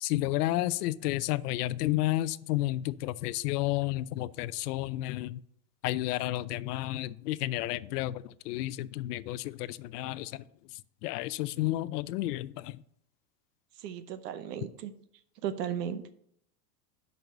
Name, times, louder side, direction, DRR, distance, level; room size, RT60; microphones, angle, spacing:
voice 1, 0.0-5.4 5.8-10.4 11.0-12.8, left 16 dB, 75° left, 0.6 m, -31 dB
voice 2, 13.8-14.9 15.4-16.1, right 9 dB, 90° right, 1.0 m, -35 dB
6.1 x 5.4 x 6.6 m
supercardioid pair, 145°, 47 cm